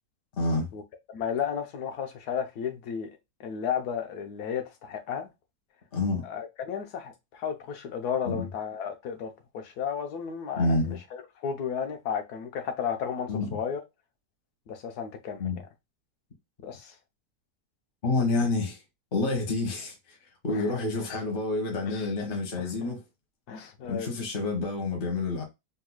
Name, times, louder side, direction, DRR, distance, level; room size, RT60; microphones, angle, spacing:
voice 1, 0.3-0.7 5.9-6.2 8.2-8.5 10.5-11.0 13.3-13.6 15.4-15.6 18.0-18.8 19.1-20.2 20.4-23.0 23.8-25.4, left 3 dB, 35° left, 1.2 m, -28 dB
voice 2, 1.1-3.1 3.4-5.3 6.2-13.8 14.7-15.5 16.6-16.9 20.5-20.8 21.9-22.0 22.6-22.9 23.5-24.1, left 7 dB, 75° left, 1.3 m, -33 dB
4.0 x 2.9 x 2.2 m
omnidirectional pair, 1.7 m